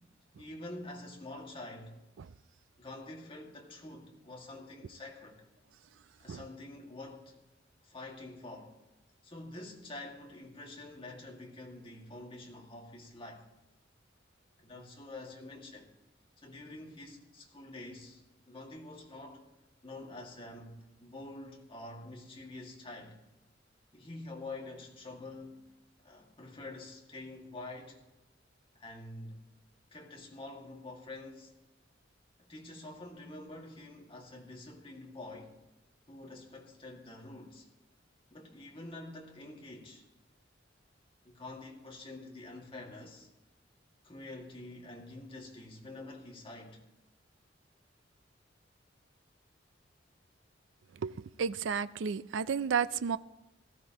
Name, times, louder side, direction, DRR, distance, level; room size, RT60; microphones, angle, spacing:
voice 1, 0.4-2.0 2.8-5.4 6.2-7.4 7.8-8.8 9.2-13.5 14.6-15.9 16.4-19.4 19.8-23.2 23.9-25.7 26.0-28.0 28.8-29.4 29.9-31.5 32.4-35.5 36.1-37.7 38.3-40.1 41.2-43.3 44.0-46.8, left 2 dB, 30° left, 2.1 m, -47 dB
voice 2, 51.4-53.2, right 6 dB, 80° right, 0.4 m, -31 dB
18.5 x 14.0 x 3.0 m
head